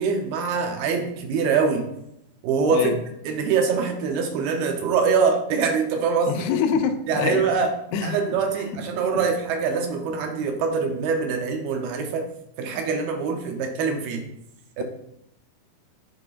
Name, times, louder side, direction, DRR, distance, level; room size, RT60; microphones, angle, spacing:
voice 1, 0.0-1.9 2.4-2.9 3.3-6.4 7.1-7.7 8.0-12.3 12.6-14.2 14.8-14.9, right 5 dB, 80° right, 4 dB, 2.6 m, -24 dB
voice 2, 6.3-7.6 7.9-8.9 9.1-9.3 14.8-14.9, left 7 dB, 85° left, 7 dB, 2.5 m, -26 dB
10.5 x 4.3 x 2.4 m, 0.80 s
omnidirectional pair, 4.4 m